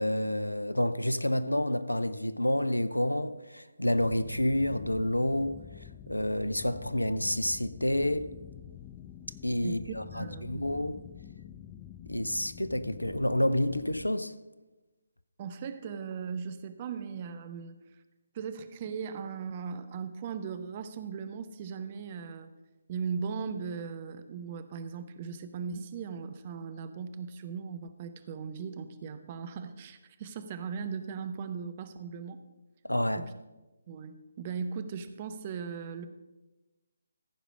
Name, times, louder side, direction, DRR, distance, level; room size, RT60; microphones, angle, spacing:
voice 1, 0.0-5.6 6.1-8.3 9.4-11.0 12.1-14.3 32.8-33.3, left 1 dB, 85° left, 0.7 m, -29 dB
sound 1, 4.0-14.1, left 10 dB, 15° left, 0.4 m, -47 dB
voice 2, 10.1-10.7 15.4-17.8 18.3-22.5 22.9-32.4 33.2-33.3 33.9-36.1, right 6 dB, 30° right, 0.7 m, -38 dB
15.0 x 5.0 x 6.3 m
figure-of-eight pair, 145°, 0 cm